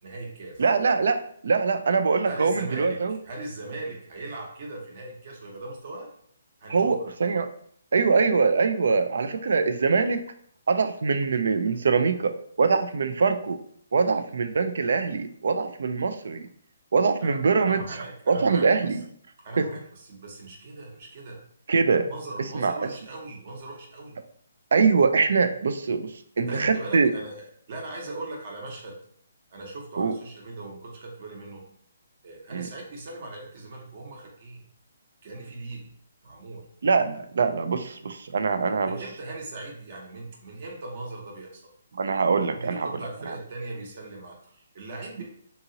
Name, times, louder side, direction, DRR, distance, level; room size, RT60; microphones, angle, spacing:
voice 1, 0.0-0.6 2.3-6.1 6.6-7.0 17.2-18.6 19.4-21.4 22.1-24.2 26.4-28.9 29.5-31.6 32.2-34.6 35.2-35.9 36.2-36.7 38.9-41.7 42.5-45.2, right 2 dB, 45° right, 0 dB, 0.8 m, -39 dB
voice 2, 0.6-3.1 6.7-7.5 7.9-10.2 10.7-13.6 13.9-16.5 16.9-17.8 18.3-19.0 19.6-19.7 21.7-22.1 22.5-22.9 24.7-27.1 30.0-30.1 32.5-32.7 36.8-39.0 41.9-42.9, right 4 dB, 70° right, 8 dB, 0.3 m, -23 dB
2.8 x 2.7 x 2.7 m, 0.63 s
hypercardioid pair, 155°, 0 cm